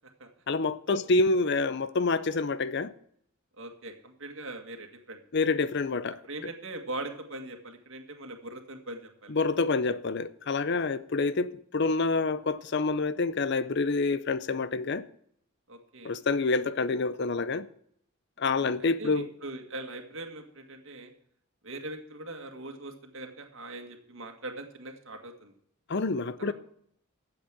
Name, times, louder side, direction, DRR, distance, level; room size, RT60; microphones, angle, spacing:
voice 1, 0.5-2.9 5.3-6.2 9.3-15.0 16.0-17.7 18.4-19.3 25.9-26.5, left 3 dB, 50° left, 0.6 m, -27 dB
voice 2, 3.5-5.2 6.3-9.5 10.7-10.8 15.7-16.1 18.4-21.1 21.6-25.5 26.4-26.5, right 2 dB, 65° right, 2.0 m, -41 dB
12.5 x 7.9 x 7.5 m
head